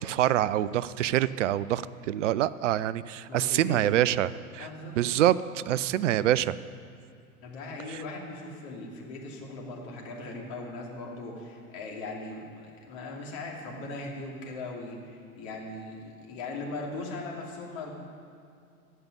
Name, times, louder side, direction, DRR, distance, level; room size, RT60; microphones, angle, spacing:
voice 1, 0.0-4.7 5.0-6.5 7.9-8.0, right 12 dB, 55° right, 17 dB, 0.5 m, -26 dB
voice 2, 3.3-4.1 4.6-5.0 7.4-17.9, left 2 dB, 40° left, -1 dB, 2.9 m, -39 dB
15.5 x 5.6 x 9.7 m, 2.3 s
figure-of-eight pair, 95°, 44 cm